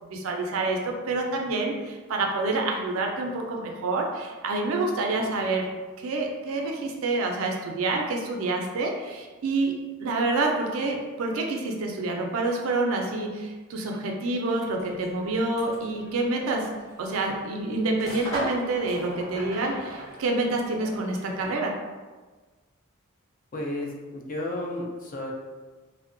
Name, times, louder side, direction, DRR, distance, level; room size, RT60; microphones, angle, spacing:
voice 1, 0.0-5.6 6.0-9.7 10.0-16.7 17.0-21.7, right 2 dB, 70° right, 1 dB, 0.4 m, -27 dB
Table football, 14.7-21.5, right 1 dB, 15° left, 0.9 m, -39 dB
voice 2, 23.5-25.3, left 1 dB, 40° left, -1 dB, 0.4 m, -32 dB
2.6 x 2.1 x 2.5 m, 1.3 s
head